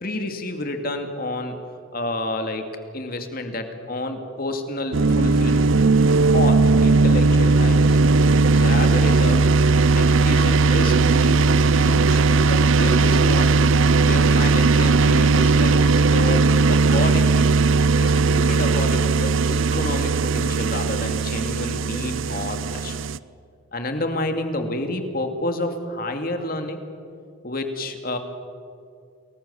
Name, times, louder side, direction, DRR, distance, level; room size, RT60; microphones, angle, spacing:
voice 1, 0.0-1.6 1.9-5.7 6.3-8.0 8.5-9.6 9.9-13.7 14.0-17.6 17.9-23.0 23.7-26.8 27.4-28.2, left 1 dB, 45° left, 5 dB, 2.5 m, -29 dB
sound 1, 4.9-23.2, right 3 dB, 75° right, 0.6 m, -18 dB
29.5 x 20.5 x 7.2 m, 2.3 s
head